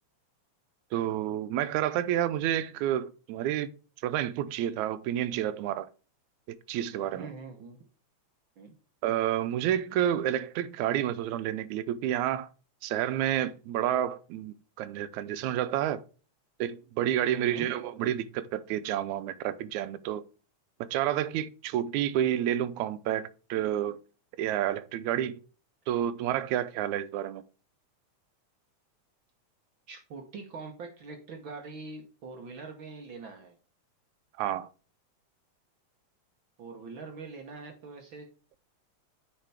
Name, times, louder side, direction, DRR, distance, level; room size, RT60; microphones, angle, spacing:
voice 1, 0.9-3.7 4.0-5.9 6.5-7.3 9.0-12.5 12.8-16.0 16.6-20.2 20.8-24.0 24.4-25.4 25.9-27.4 34.4-34.7, right 11 dB, 85° right, 2.0 m, -29 dB
voice 2, 7.1-7.8 8.6-8.7 17.3-17.7 29.9-33.6 36.6-38.3, right 4 dB, 55° right, 1.5 m, -43 dB
9.0 x 5.2 x 3.4 m
omnidirectional pair, 3.4 m